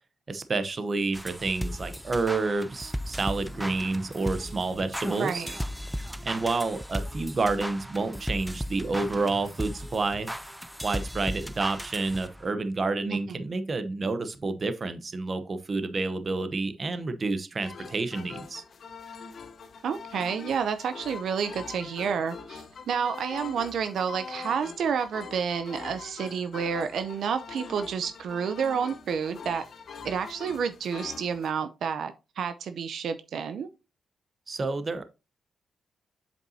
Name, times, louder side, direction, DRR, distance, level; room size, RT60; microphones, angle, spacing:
voice 1, 0.3-5.4 6.2-10.3 10.8-18.6 34.5-35.0, right 3 dB, 30° right, 0.8 m, -29 dB
sound 1, 1.1-12.5, equal, ahead, 0.4 m, -36 dB
voice 2, 5.1-5.6 13.1-13.4 19.8-29.6 30.0-33.7, right 6 dB, 70° right, 0.5 m, -30 dB
sound 2, 17.6-31.5, left 5 dB, 50° left, 0.8 m, -43 dB
7.7 x 5.3 x 2.7 m
cardioid pair, 130°, 0 cm